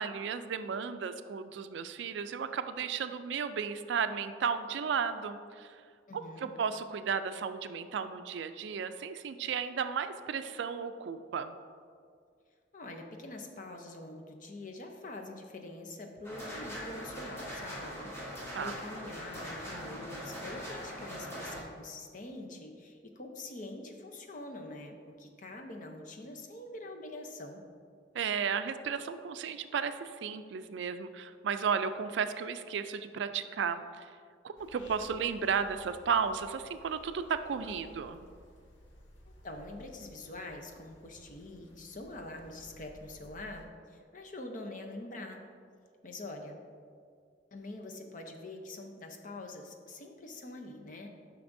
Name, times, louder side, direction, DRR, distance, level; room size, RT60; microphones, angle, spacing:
voice 1, 0.0-5.8 6.1-11.6 18.5-18.7 28.1-34.1 34.4-38.3, right 6 dB, 75° right, 10 dB, 0.3 m, -34 dB
voice 2, 6.1-6.5 12.7-27.6 39.3-45.4 46.0-46.6 47.5-51.1, left 2 dB, 45° left, 3 dB, 0.7 m, -45 dB
sound 1, 16.2-21.6, equal, 15° left, 1.1 m, -41 dB
sound 2, 34.6-43.7, equal, 85° left, 0.8 m, -57 dB
9.3 x 5.9 x 2.6 m, 2.2 s
head